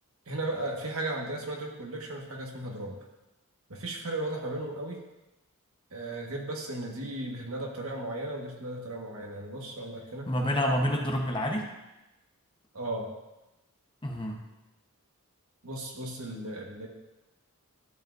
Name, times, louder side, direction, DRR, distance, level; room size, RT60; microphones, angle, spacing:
voice 1, 0.3-3.0 3.7-5.0 5.9-10.3 12.7-13.1 15.6-16.9, right 1 dB, 75° right, 0 dB, 1.5 m, -35 dB
voice 2, 10.3-11.7 14.0-14.4, equal, 20° left, 1 dB, 0.9 m, -28 dB
12.0 x 7.4 x 2.6 m, 1.0 s
head